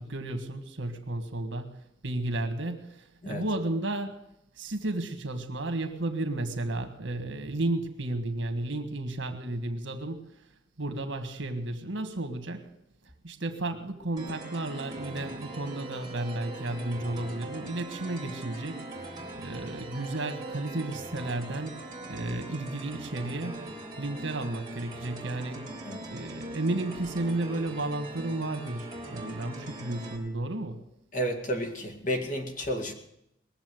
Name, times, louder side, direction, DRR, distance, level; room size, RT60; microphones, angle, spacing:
voice 1, 0.0-4.2 4.6-10.3 10.8-12.7 13.2-19.1 19.3-21.8 22.1-23.7 24.0-25.8 26.1-30.8, right 2 dB, 85° right, 8 dB, 1.6 m, -33 dB
sound 1, 14.2-30.2, right 1 dB, 20° right, 3.3 m, -41 dB
voice 2, 31.1-32.9, equal, 45° left, 3 dB, 2.0 m, -31 dB
20.5 x 7.3 x 7.7 m, 0.81 s
head